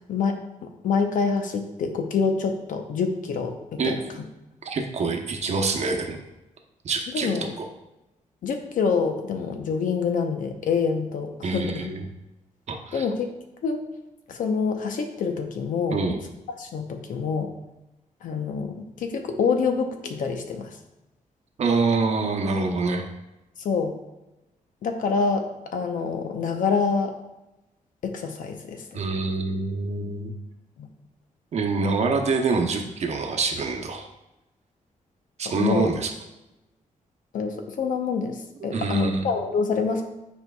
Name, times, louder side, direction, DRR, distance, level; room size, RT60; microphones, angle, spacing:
voice 1, 0.1-4.0 7.1-7.5 8.4-11.9 12.9-13.3 13.6-13.8 14.3-16.0 16.6-17.5 18.2-20.8 23.6-23.9 24.8-27.1 28.0-29.0 30.8-30.9 35.6-35.9 37.3-40.1, left 5 dB, 80° left, 5 dB, 0.8 m, -26 dB
voice 2, 4.6-6.2 6.8-7.7 11.4-12.0 12.7-13.0 15.9-16.2 21.6-23.0 28.9-30.3 31.5-34.1 35.4-36.1 38.6-39.3, right 4 dB, 55° right, 3 dB, 0.8 m, -26 dB
9.3 x 4.5 x 2.3 m, 0.97 s
wide cardioid pair, 145°, 14 cm